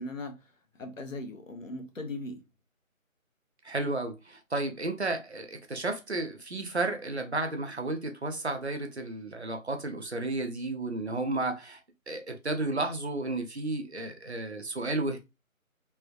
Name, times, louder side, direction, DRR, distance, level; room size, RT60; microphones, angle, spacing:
voice 1, 0.0-2.4, left 2 dB, 65° left, 0.9 m, -39 dB
voice 2, 3.6-11.8 12.1-15.2, right 2 dB, 50° right, 0.6 m, -32 dB
3.3 x 2.3 x 2.2 m
figure-of-eight pair, 170°, 42 cm